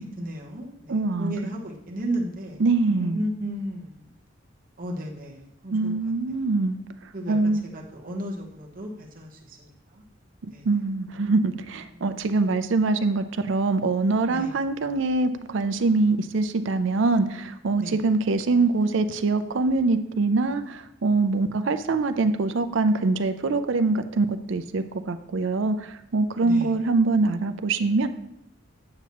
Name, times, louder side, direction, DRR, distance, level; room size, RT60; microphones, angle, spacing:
voice 1, 0.2-2.6 2.9-4.0 4.8-6.1 7.1-9.7 10.5-10.7 12.0-12.3 14.3-14.5 17.8-18.0 26.4-26.7, equal, 45° right, -1 dB, 1.1 m, -34 dB
voice 2, 0.9-1.5 2.6-3.3 5.7-6.8 7.3-7.7 10.6-28.1, right 3 dB, 70° right, 10 dB, 0.5 m, -24 dB
8.9 x 5.8 x 3.0 m, 0.78 s
head